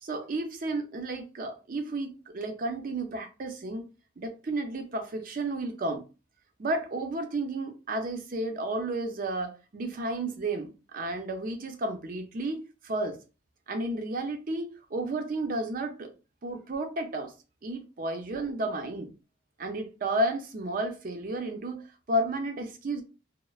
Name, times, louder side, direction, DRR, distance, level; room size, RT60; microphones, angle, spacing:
voice 1, 0.0-3.9 4.2-6.0 6.6-13.2 13.7-16.1 16.4-17.3 17.6-19.1 19.6-23.0, right 2 dB, 45° right, 0.5 m, -32 dB
3.0 x 2.0 x 2.3 m
head